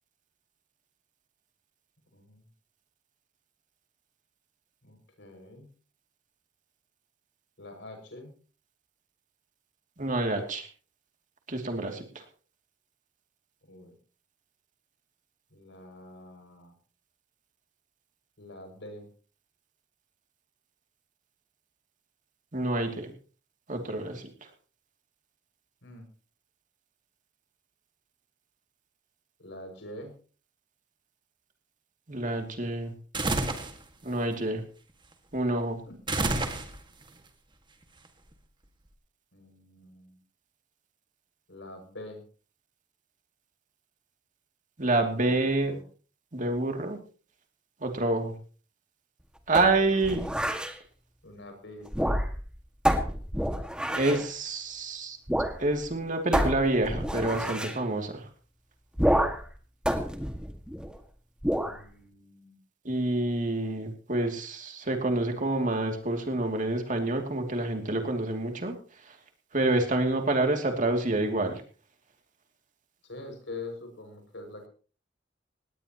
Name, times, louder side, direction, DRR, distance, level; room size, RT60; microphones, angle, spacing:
voice 1, 2.1-2.4 4.8-5.7 7.6-8.3 13.7-13.9 15.5-16.7 18.4-19.1 25.8-26.1 29.4-30.1 35.9-36.0 39.3-40.2 41.5-42.2 45.1-45.8 49.8-50.3 51.2-52.1 61.6-62.6 73.1-74.7, left 2 dB, 75° left, 4 dB, 6.4 m, -45 dB
voice 2, 10.0-10.7 11.5-12.2 22.5-23.1 23.7-24.3 32.1-32.9 34.0-34.6 35.3-35.8 44.8-45.7 46.3-47.0 47.8-48.3 49.5-50.2 53.9-55.2 55.6-58.3 62.8-68.7 69.1-69.2 69.5-71.6, right 2 dB, 45° right, 4 dB, 2.7 m, -28 dB
sound 1, 33.1-33.8 36.1-37.0, right 2 dB, 25° right, 1.9 m, -28 dB
sound 2, 49.5-50.8 51.9-52.5 52.9-54.3 55.3-55.6 55.8-55.9 56.3-57.8 59.0-59.5 59.9-61.0 61.4-61.8, equal, 5° right, 1.9 m, -28 dB
19.0 x 18.5 x 3.0 m, 0.39 s
head